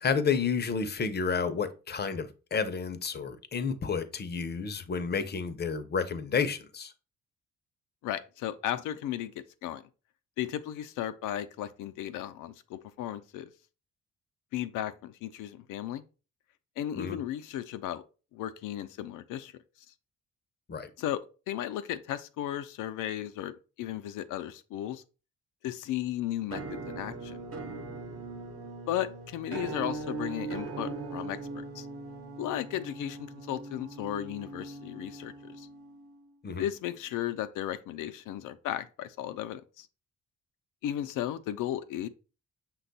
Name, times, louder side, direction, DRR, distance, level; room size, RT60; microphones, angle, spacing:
voice 1, 0.0-6.9 17.0-17.2 20.7-20.9 36.4-36.6, left 5 dB, 35° left, 0.6 m, -30 dB
voice 2, 8.0-9.3 9.6-9.8 10.4-13.5 14.5-16.0 16.8-18.0 18.3-19.5 21.0-21.2 21.5-25.0 25.6-27.4 28.9-31.4 31.7-31.9 32.4-35.7 36.6-39.9 40.8-42.1, left 12 dB, 85° left, 0.5 m, -35 dB
Musical instrument, 26.5-36.3, right 3 dB, 50° right, 1.0 m, -40 dB
5.8 x 2.3 x 3.9 m
cardioid pair, 90°, 30 cm